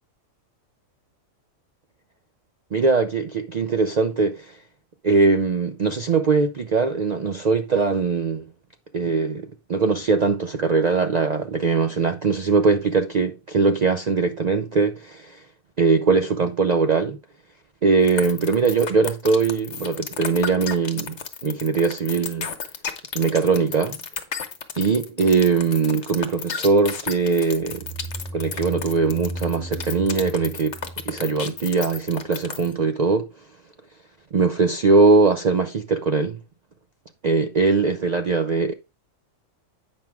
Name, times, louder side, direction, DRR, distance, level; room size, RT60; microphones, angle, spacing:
voice 1, 2.7-4.6 5.0-8.5 8.9-15.4 15.8-17.2 17.8-22.5 23.1-24.0 24.8-27.9 28.3-30.8 31.1-33.3 34.3-36.4 37.2-38.7, right 4 dB, 85° right, 0.3 m, -21 dB
sound 1, 18.1-32.7, left 6 dB, 55° left, 1.2 m, -32 dB
sound 2, 27.4-32.0, right 1 dB, 5° right, 0.3 m, -35 dB
8.8 x 5.9 x 3.5 m
omnidirectional pair, 1.4 m